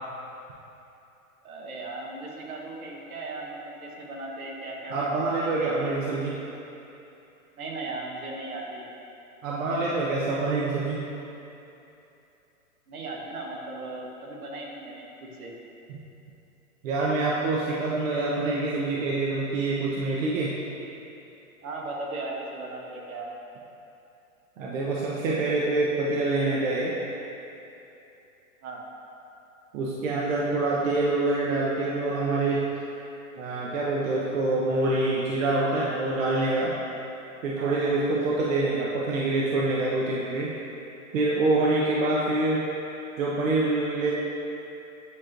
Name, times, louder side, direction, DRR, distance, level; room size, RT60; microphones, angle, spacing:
voice 1, 1.4-6.0 7.6-8.8 12.9-15.5 21.6-23.3 28.6-28.8 37.6-37.8, right 2 dB, 75° right, -1 dB, 1.3 m, -37 dB
voice 2, 4.9-6.4 9.4-11.0 16.8-20.5 24.6-26.9 29.7-32.7 33.4-36.7 37.4-40.5 41.1-42.6 43.2-44.1, right 2 dB, 60° right, -5 dB, 0.9 m, -26 dB
9.6 x 4.5 x 2.5 m, 2.9 s
hypercardioid pair, 130°, 44 cm